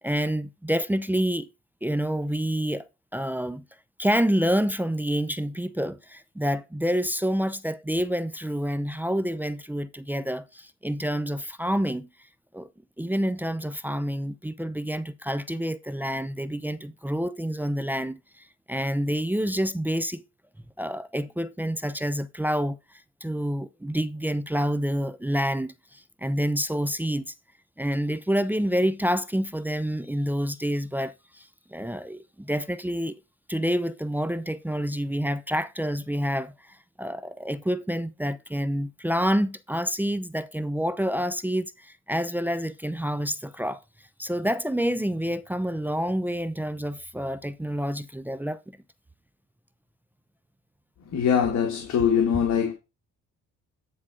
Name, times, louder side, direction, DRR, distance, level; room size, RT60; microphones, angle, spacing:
voice 1, 0.0-1.5 1.8-3.6 4.0-12.1 12.5-12.7 13.0-20.2 20.8-22.8 23.2-27.3 27.8-33.1 33.5-43.8 44.2-48.6, equal, 5° right, 0.6 m, -28 dB
voice 2, 51.1-52.7, left 7 dB, 60° left, 1.8 m, -22 dB
9.8 x 3.8 x 4.9 m
cardioid pair, 90°, 30 cm